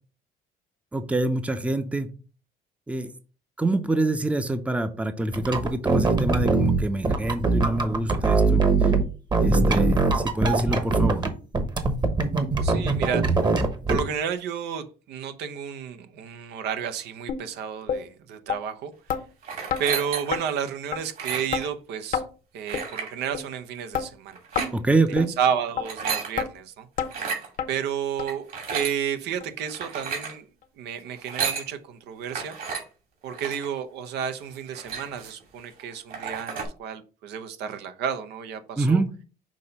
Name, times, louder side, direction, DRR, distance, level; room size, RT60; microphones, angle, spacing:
voice 1, 0.9-2.1 2.9-3.1 3.6-8.9 9.4-11.3 24.7-25.3 38.8-39.1, right 2 dB, 10° right, 0.6 m, -26 dB
sound 1, 5.3-9.0 9.3-11.3 11.5-14.0, right 3 dB, 25° right, 1.0 m, -22 dB
voice 2, 12.6-13.4 13.9-18.9 19.8-22.2 22.5-24.4 25.1-26.9 27.7-30.5 30.8-32.6 33.2-39.0, right 8 dB, 80° right, 0.8 m, -31 dB
sound 2, 17.3-17.4 17.9-18.0 18.5-18.6 19.1-19.2 19.7-19.8 20.3-20.4 20.9-21.0 21.5-21.7 22.1-22.3 22.7-22.9 23.3-23.5 23.9-24.1 24.6-24.7 25.2-25.3 25.8-25.9 26.4-26.5 27.0-27.1 27.6-27.7 28.2-28.3 28.8-28.9 29.4-29.5 30.0-30.1, left 7 dB, 50° left, 0.8 m, -28 dB
sound 3, 19.4-20.5 21.1-21.7 22.7-23.1 24.3-24.7 25.7-26.3 27.0-27.5 28.3-29.0 29.7-30.3 31.1-31.7 32.3-32.8 33.3-33.7 34.2-34.3 34.6-35.4 35.8-35.9 36.1-36.7, right 6 dB, 60° right, 2.5 m, -32 dB
6.2 x 2.8 x 5.3 m
cardioid pair, 110°, 17 cm